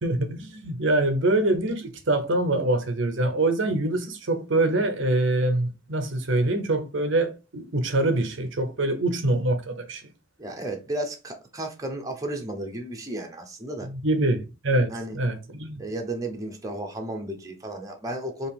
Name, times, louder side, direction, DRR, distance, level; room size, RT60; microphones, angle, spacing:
voice 1, 0.0-10.0 13.8-15.8, right 2 dB, 60° right, 0.8 m, -24 dB
voice 2, 10.4-13.9 14.9-15.2 15.8-18.5, right 1 dB, 15° right, 0.8 m, -33 dB
4.7 x 3.0 x 3.5 m
head